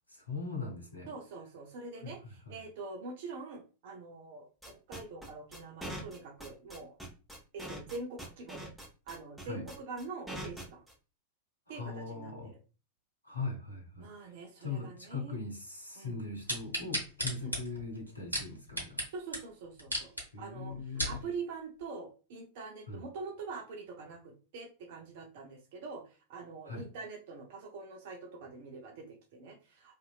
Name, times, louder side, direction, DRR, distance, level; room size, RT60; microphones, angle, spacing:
voice 1, 0.1-1.1 2.0-2.6 9.5-9.6 11.7-12.5 13.2-14.3 14.6-19.0 20.3-21.3 22.9-23.0 26.6-26.9, left 3 dB, 85° left, 0.8 m, -40 dB
voice 2, 1.1-7.0 7.5-8.7 9.1-10.8 11.7-12.6 14.0-15.4 16.0-16.2 17.4-17.6 19.1-20.8 21.1-29.9, right 4 dB, 50° right, 0.6 m, -44 dB
sound 1, 4.6-10.9, right 1 dB, 5° right, 1.1 m, -43 dB
sound 2, 16.5-19.1 19.3-19.4 19.8-20.2 20.7-21.2 21.8-21.9, equal, 85° right, 0.9 m, -34 dB
2.7 x 2.6 x 2.2 m
figure-of-eight pair, 90°, 0 cm